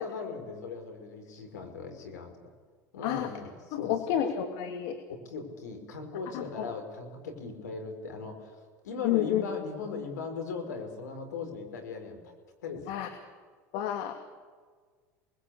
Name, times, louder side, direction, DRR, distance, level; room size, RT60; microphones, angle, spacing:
voice 1, 0.0-2.3 2.9-4.2 5.1-12.2 12.6-13.0, left 4 dB, 85° left, 5 dB, 5.1 m, -39 dB
voice 2, 3.7-5.0 6.6-6.7 9.0-9.4 12.9-13.1 13.7-14.1, left 11 dB, 65° left, 6 dB, 2.4 m, -29 dB
28.0 x 20.5 x 8.5 m, 1.5 s
hypercardioid pair, 80°, 9 cm